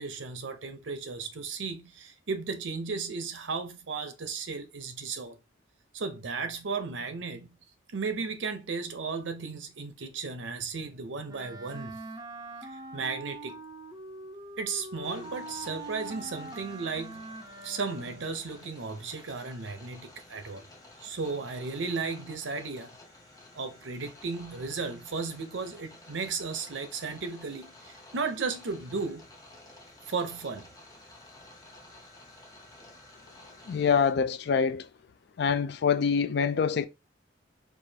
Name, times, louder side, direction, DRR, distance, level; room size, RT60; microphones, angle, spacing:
voice 1, 0.0-5.4 5.9-7.6 7.9-12.0 12.9-13.6 14.6-17.3 17.6-20.7 21.0-22.9 23.5-27.7 28.1-29.2 30.1-30.7, right 4 dB, 80° right, 0.7 m, -35 dB
Wind instrument woodwind instrument, 11.3-18.4, right 2 dB, 20° right, 0.5 m, -43 dB
sound 1, 15.0-34.1, left 1 dB, 20° left, 0.8 m, -53 dB
voice 2, 33.7-34.9 35.4-36.9, left 6 dB, 60° left, 0.3 m, -25 dB
4.7 x 2.4 x 2.7 m
head